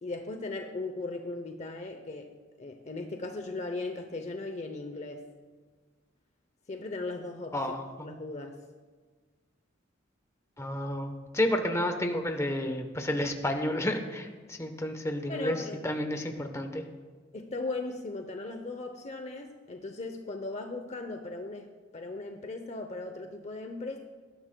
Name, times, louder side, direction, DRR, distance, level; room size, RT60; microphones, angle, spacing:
voice 1, 0.0-5.3 6.7-7.6 8.0-8.6 15.3-15.8 17.3-21.7 21.9-24.0, left 2 dB, 35° left, 5 dB, 0.7 m, -37 dB
voice 2, 7.5-8.1 10.6-16.8, left 1 dB, 15° left, 5 dB, 1.0 m, -31 dB
19.0 x 12.5 x 2.3 m, 1.4 s
head